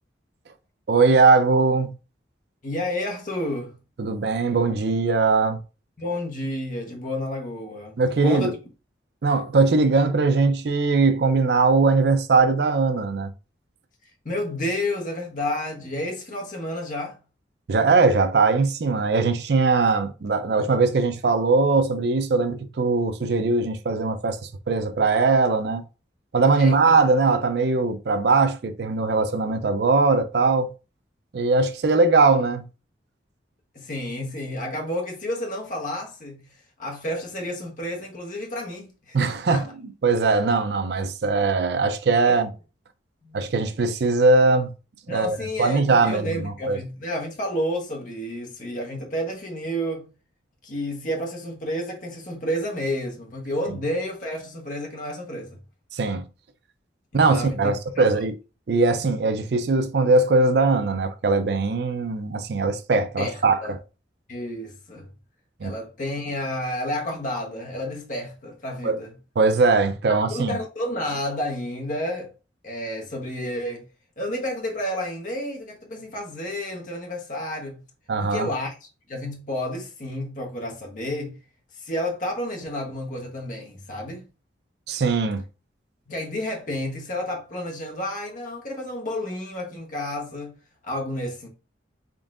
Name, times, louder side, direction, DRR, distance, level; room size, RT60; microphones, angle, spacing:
voice 1, 0.9-1.9 4.0-5.6 8.0-8.5 9.2-13.3 17.7-25.8 26.3-30.7 31.3-32.6 39.1-39.7 40.0-42.5 43.3-44.7 45.1-46.8 55.9-56.2 57.1-58.3 58.7-63.8 65.6-65.7 68.8-69.0 69.4-70.6 78.1-78.5 84.9-85.4, right 3 dB, 60° right, 0.4 m, -20 dB
voice 2, 2.6-3.7 6.0-8.5 14.2-17.2 19.9-20.0 26.6-26.9 33.7-36.4 36.8-39.2 39.5-39.6 42.3-42.4 43.2-43.4 45.1-50.1 50.6-55.6 57.1-58.0 63.2-63.7 64.3-65.1 65.6-69.1 70.1-72.3 72.6-73.8 74.2-77.8 78.2-81.4 81.7-84.2 86.1-90.5 90.8-91.5, left 1 dB, 45° left, 1.1 m, -30 dB
3.7 x 3.6 x 2.5 m
head